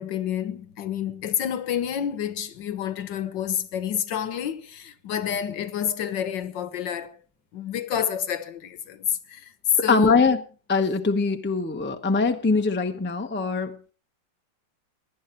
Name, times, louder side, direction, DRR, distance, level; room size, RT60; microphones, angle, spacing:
voice 1, 0.0-7.1 7.5-10.2, left 9 dB, 70° left, 1.7 m, -28 dB
voice 2, 9.7-10.4 10.7-13.8, left 4 dB, 10° left, 0.6 m, -22 dB
17.5 x 11.0 x 4.5 m
omnidirectional pair, 2.0 m